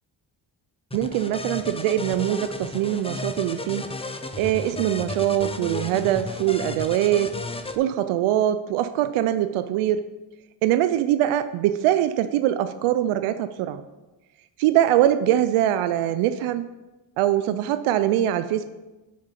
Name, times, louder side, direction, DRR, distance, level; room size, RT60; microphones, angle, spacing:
sound 1, 0.9-7.8, left 2 dB, 10° left, 0.7 m, -34 dB
voice 1, 0.9-3.8 4.4-7.4 7.8-10.1 10.6-13.8 14.6-16.7 17.2-18.7, right 12 dB, 80° right, 12 dB, 0.6 m, -23 dB
8.7 x 5.1 x 5.7 m, 1.1 s
supercardioid pair, 60°, 49 cm